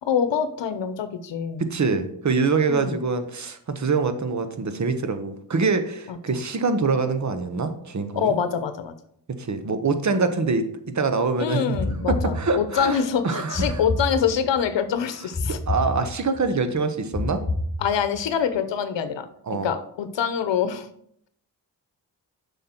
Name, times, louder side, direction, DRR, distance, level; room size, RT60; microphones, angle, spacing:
voice 1, 0.0-1.7 2.7-3.0 6.1-6.4 8.1-8.9 11.4-15.6 17.8-19.3 19.6-20.9, left 7 dB, 85° left, 10 dB, 0.8 m, -25 dB
voice 2, 1.6-8.3 9.4-11.6 12.1-13.8 15.7-17.4 19.5-19.7, right 4 dB, 40° right, 9 dB, 1.0 m, -24 dB
sound 1, 11.7-12.9 13.5-14.7 15.3-16.5 17.1-18.3, left 2 dB, 5° left, 1.9 m, -29 dB
7.4 x 5.5 x 4.4 m, 0.68 s
cardioid pair, 85°, 42 cm